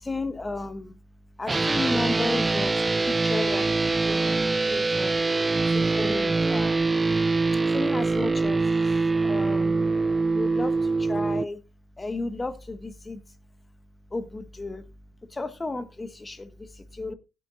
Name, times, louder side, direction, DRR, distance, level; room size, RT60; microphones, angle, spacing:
voice 1, 0.0-1.0 1.4-2.8 3.0-4.4 4.7-5.2 5.7-6.8 7.7-8.7 9.1-10.0 10.3-11.6 12.0-13.2 14.1-14.8 15.3-17.1, left 2 dB, 20° left, 1.5 m, -33 dB
sound 1, 1.5-11.4, right 3 dB, 20° right, 0.5 m, -24 dB
16.0 x 9.2 x 2.6 m
hypercardioid pair, 60°, 0 cm